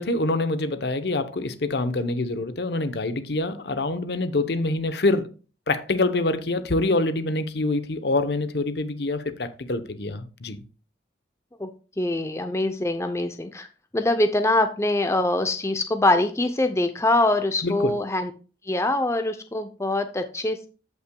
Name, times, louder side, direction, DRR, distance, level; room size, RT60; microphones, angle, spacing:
voice 1, 0.0-5.3 5.7-10.6 17.6-17.9, left 2 dB, 65° left, 0.8 m, -25 dB
voice 2, 12.0-13.7 13.9-18.3 18.6-20.7, left 2 dB, 15° left, 0.6 m, -23 dB
14.0 x 5.8 x 2.2 m
head